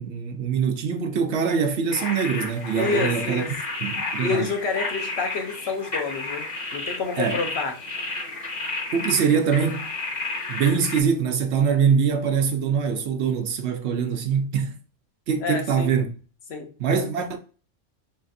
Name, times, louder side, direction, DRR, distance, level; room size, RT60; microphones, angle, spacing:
voice 1, 0.0-3.4 3.8-4.5 7.2-7.4 8.9-9.9 10.5-14.8 15.3-16.1 16.8-17.4, right 6 dB, 65° right, 0.9 m, -23 dB
sound 1, 1.9-11.0, left 3 dB, 40° left, 0.9 m, -32 dB
voice 2, 2.8-3.5 4.2-6.5 6.7-7.7 15.4-15.9 16.5-17.0, left 4 dB, 60° left, 0.9 m, -28 dB
5.7 x 2.5 x 2.5 m
omnidirectional pair, 1.3 m